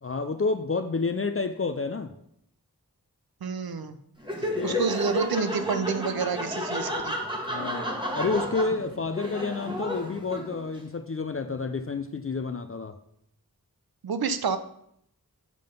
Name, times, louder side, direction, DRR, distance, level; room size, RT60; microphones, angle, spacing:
voice 1, 0.0-2.1 4.6-4.8 7.5-13.0, left 4 dB, 40° left, 8 dB, 0.4 m, -29 dB
voice 2, 3.4-4.0 4.6-7.1 14.0-14.6, right 5 dB, 75° right, 10 dB, 0.6 m, -28 dB
Laughter, 4.2-10.8, equal, 15° right, 1.3 m, -32 dB
7.5 x 3.8 x 5.1 m, 0.73 s
wide cardioid pair, 55°, 36 cm